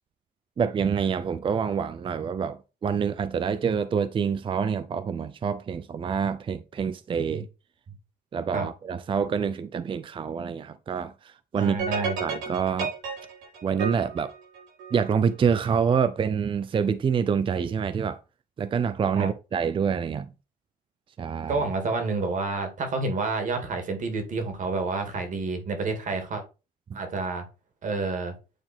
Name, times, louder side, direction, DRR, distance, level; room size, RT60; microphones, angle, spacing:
voice 1, 0.6-7.5 8.3-11.8 12.2-12.9 13.6-14.3 14.9-18.2 18.6-20.3 21.2-21.6 26.9-27.0, right 6 dB, 30° right, 0.5 m, -26 dB
voice 2, 11.5-12.2 19.1-19.3 21.5-26.4 26.9-27.5 27.8-28.3, right 3 dB, 50° right, 2.4 m, -29 dB
sound 1, 11.8-15.2, right 5 dB, 80° right, 4.8 m, -32 dB
9.1 x 3.8 x 4.4 m
cardioid pair, 110°, 17 cm